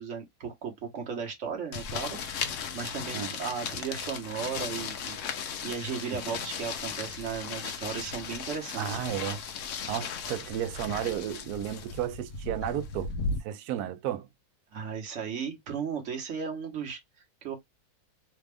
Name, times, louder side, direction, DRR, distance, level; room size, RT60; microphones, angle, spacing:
voice 1, 0.0-5.2 5.6-9.0 14.7-17.0 17.4-17.6, right 6 dB, 45° right, 1.3 m, -36 dB
sound 1, 1.7-13.4, left 5 dB, 65° left, 0.8 m, -36 dB
voice 2, 8.8-9.4 9.9-13.1 13.4-14.3, right 11 dB, 70° right, 1.0 m, -33 dB
3.4 x 2.4 x 3.3 m
omnidirectional pair, 2.0 m